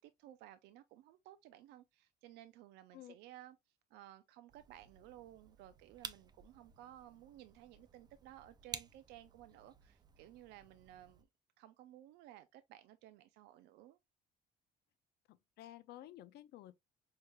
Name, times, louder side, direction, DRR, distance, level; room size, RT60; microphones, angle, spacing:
voice 1, 0.0-3.6 3.9-11.3 11.6-14.0, right 13 dB, 85° right, 0.4 m, -57 dB
sound 1, 4.5-11.2, right 5 dB, 25° right, 0.4 m, -53 dB
voice 2, 15.3-16.7, left 13 dB, 70° left, 0.5 m, -53 dB
4.6 x 3.2 x 2.2 m
cardioid pair, 110°, 17 cm